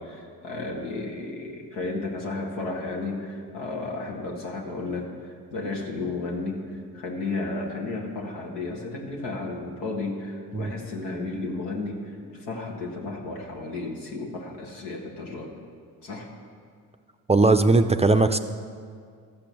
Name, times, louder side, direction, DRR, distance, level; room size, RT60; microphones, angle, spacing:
voice 1, 0.0-15.6 16.0-16.3, left 3 dB, 85° left, 0 dB, 1.8 m, -33 dB
voice 2, 17.3-18.4, right 3 dB, 15° right, 7 dB, 0.4 m, -19 dB
13.5 x 6.0 x 6.9 m, 2.1 s
supercardioid pair, 65°, 41 cm